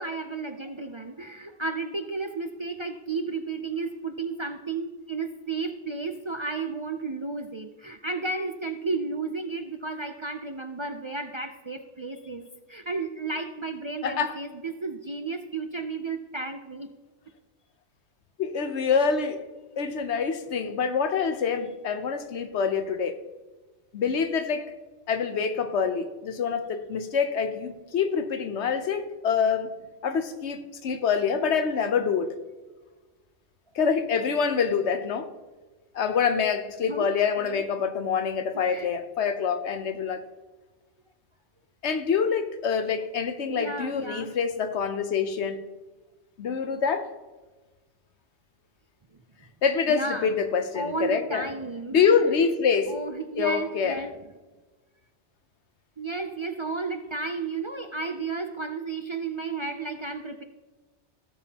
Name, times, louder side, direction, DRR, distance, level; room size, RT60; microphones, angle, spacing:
voice 1, 0.0-16.9 36.8-37.1 37.4-37.6 38.7-38.9 43.5-44.3 49.9-50.3 50.7-52.0 52.9-54.1 56.0-60.4, right 3 dB, 35° right, 0.5 m, -33 dB
voice 2, 14.0-14.4 18.4-19.4 19.8-23.2 23.9-24.7 25.1-29.8 30.0-32.4 33.7-35.3 35.9-40.2 41.8-45.6 46.4-47.1 49.6-51.5 51.9-53.0 53.4-54.0, left 6 dB, 80° left, 1.1 m, -26 dB
17.0 x 7.1 x 2.9 m
omnidirectional pair, 1.1 m